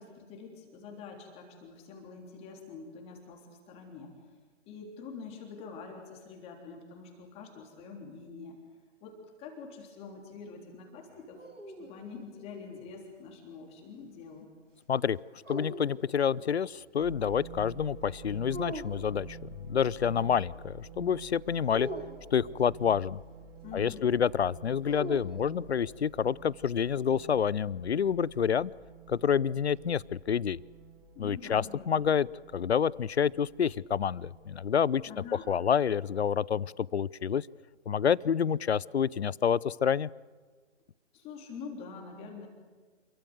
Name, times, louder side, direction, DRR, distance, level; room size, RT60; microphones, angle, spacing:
voice 1, 0.0-4.2 4.7-8.6 9.0-11.4 11.8-14.5 23.6-24.1 31.1-32.1 35.1-35.5 41.1-42.5, left 5 dB, 15° left, 1 dB, 3.4 m, -46 dB
sound 1, 11.1-13.0 15.4-16.7 18.5-19.3 21.7-22.8 24.8-26.0, right 1 dB, 90° right, 3.4 m, -43 dB
voice 2, 15.5-21.9 22.3-23.2 23.7-28.7 29.1-30.6 31.2-32.3 32.5-35.0 35.5-37.5 37.9-40.1, left 7 dB, 60° left, 23 dB, 0.7 m, -28 dB
sound 2, 17.0-36.5, right 4 dB, 10° right, 2.9 m, -51 dB
28.5 x 23.5 x 7.9 m, 1.4 s
figure-of-eight pair, 140°, 36 cm